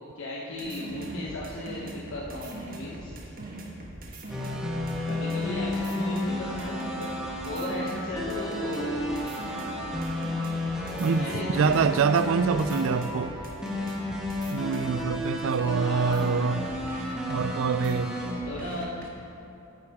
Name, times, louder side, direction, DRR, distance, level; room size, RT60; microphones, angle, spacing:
voice 1, 0.2-3.1 5.0-7.1 7.4-9.1 11.0-11.9 15.8-16.2 18.4-18.9, left 1 dB, 65° left, 1.1 m, -36 dB
sound 1, 0.5-15.1 15.6-19.1, right 1 dB, 45° right, 1.4 m, -40 dB
sound 2, 4.3-18.3, left 1 dB, 5° right, 1.4 m, -32 dB
voice 2, 11.0-13.3 14.5-16.6 17.3-18.2, right 5 dB, 65° right, 0.4 m, -25 dB
14.0 x 9.4 x 3.6 m
head